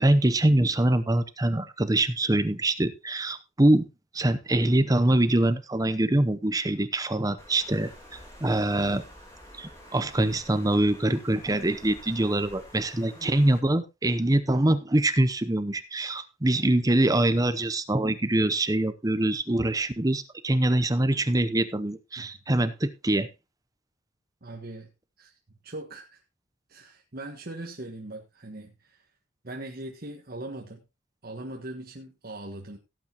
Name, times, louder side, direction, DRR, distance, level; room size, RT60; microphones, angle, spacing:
voice 1, 0.0-3.9 4.1-7.9 8.4-9.0 9.6-23.3, right 1 dB, 20° right, 12 dB, 0.7 m, -24 dB
Water, 7.4-13.6, equal, 15° left, 3.6 m, -49 dB
voice 2, 24.4-24.9 25.2-26.2 26.7-29.0 29.4-30.8 31.2-32.8, right 1 dB, 50° right, 2 dB, 1.4 m, -40 dB
16.5 x 8.5 x 2.9 m, 0.24 s
head